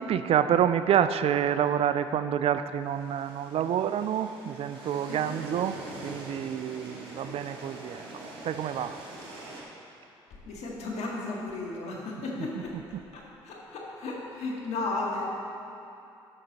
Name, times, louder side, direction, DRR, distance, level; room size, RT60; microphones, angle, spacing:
voice 1, 0.0-8.0 8.4-9.0 12.4-12.5 12.9-13.0, right 9 dB, 55° right, 12 dB, 0.4 m, -28 dB
sound 1, 2.8-9.6, right 2 dB, 90° right, 1.2 m, -44 dB
voice 2, 4.8-5.4 7.0-7.3 10.4-12.8 13.1-15.3, left 3 dB, 65° left, -2 dB, 1.7 m, -35 dB
11.5 x 6.3 x 4.0 m, 2.7 s
hypercardioid pair, 50°, 12 cm